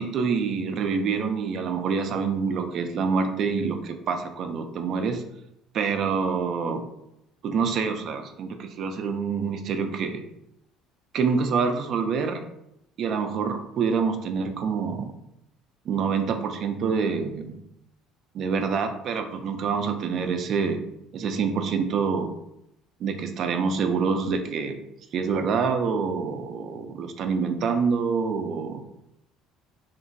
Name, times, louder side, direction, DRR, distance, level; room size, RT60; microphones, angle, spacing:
voice 1, 0.0-5.2 5.7-6.9 7.4-10.2 11.1-12.4 13.0-15.1 15.9-17.6 18.3-20.8 21.1-22.4 23.0-24.8 25.1-28.8, right 5 dB, 55° right, 7 dB, 0.4 m, -26 dB
2.9 x 2.5 x 2.5 m, 0.81 s
supercardioid pair, 90°, 0 cm